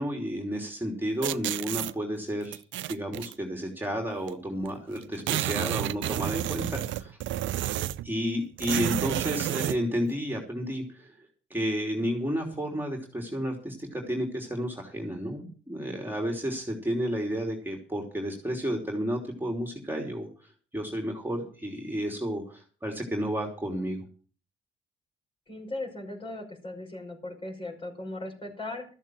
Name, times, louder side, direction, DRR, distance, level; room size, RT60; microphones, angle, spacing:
voice 1, 0.0-2.6 2.9-7.2 8.0-11.2 11.5-20.3 20.7-24.1, equal, 10° right, 1 dB, 3.1 m, -31 dB
sound 1, 1.2-1.9 2.5-3.3 4.3-4.4 4.6-4.7 5.0-8.1 8.6-9.8, right 13 dB, 75° right, 0.6 m, -30 dB
voice 2, 25.5-28.9, left 2 dB, 25° left, 2 dB, 5.5 m, -38 dB
13.5 x 7.2 x 7.7 m, 0.41 s
cardioid pair, 90°, 20 cm